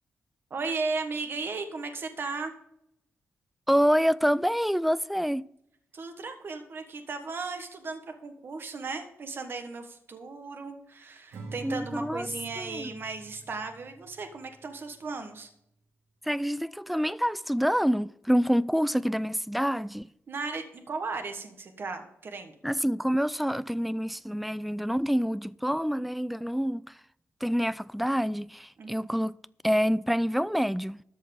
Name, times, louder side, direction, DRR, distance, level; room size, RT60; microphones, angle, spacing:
voice 1, 0.5-2.5 5.9-15.5 20.3-22.5 28.8-29.1, right 4 dB, 50° right, 1.4 m, -36 dB
voice 2, 3.7-5.5 11.6-12.3 12.6-12.9 16.2-20.1 22.6-26.9 27.4-29.4 29.6-31.0, equal, ahead, 0.3 m, -27 dB
Acoustic guitar / Strum, 11.3-14.7, right 3 dB, 80° right, 2.1 m, -46 dB
13.5 x 4.7 x 8.6 m
cardioid pair, 110°, 5 cm